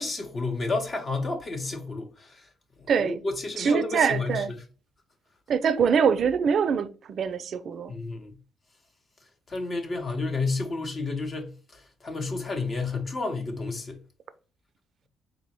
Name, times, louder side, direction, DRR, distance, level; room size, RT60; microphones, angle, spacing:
voice 1, 0.0-2.5 2.8-4.4 7.9-8.3 9.5-14.0, left 3 dB, 40° left, 0.7 m, -31 dB
voice 2, 2.9-3.2 3.6-4.5 5.5-7.9, right 6 dB, 60° right, 0.3 m, -24 dB
3.9 x 2.0 x 4.2 m
cardioid pair, 90°, 0 cm